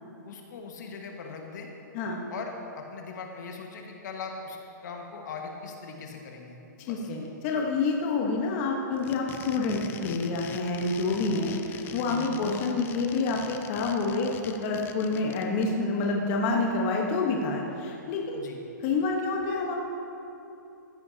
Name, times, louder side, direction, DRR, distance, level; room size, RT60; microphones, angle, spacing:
voice 1, 0.2-1.7 2.3-7.1 12.1-12.4 18.3-18.6, left 4 dB, 65° left, 1 dB, 1.6 m, -40 dB
voice 2, 6.9-18.5 18.8-19.8, left 3 dB, 40° left, 0 dB, 1.2 m, -28 dB
sound 1, 8.9-15.6, left 8 dB, 20° left, 0.5 m, -43 dB
14.5 x 11.0 x 2.8 m, 2.8 s
hypercardioid pair, 140°, 10 cm